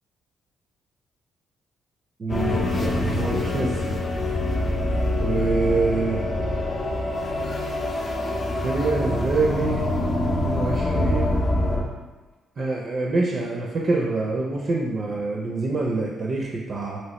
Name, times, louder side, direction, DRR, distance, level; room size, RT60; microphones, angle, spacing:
voice 1, 2.2-3.9 5.2-6.2 8.6-11.4 12.6-17.0, right 3 dB, 45° right, -2 dB, 0.4 m, -26 dB
sound 1, 2.3-11.8, left 1 dB, 35° left, 0.5 m, -25 dB
3.1 x 2.8 x 2.9 m, 1.3 s
cardioid pair, 90°, 0 cm